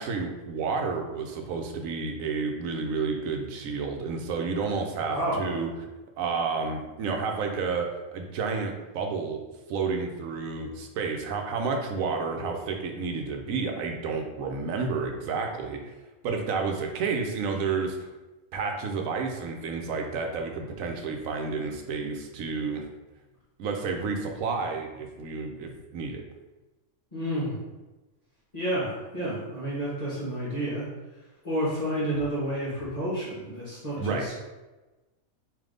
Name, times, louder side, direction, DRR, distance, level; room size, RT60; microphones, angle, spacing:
voice 1, 0.0-5.7 6.2-7.9 8.1-9.4 9.7-15.9 16.2-18.0 18.5-22.8 23.6-26.2 34.0-34.3, right 4 dB, 80° right, 3 dB, 1.0 m, -30 dB
voice 2, 5.0-5.6 27.1-27.6 28.5-30.9 31.4-34.3, right 1 dB, 30° left, -10 dB, 1.1 m, -30 dB
3.4 x 2.7 x 3.7 m, 1.1 s
omnidirectional pair, 1.4 m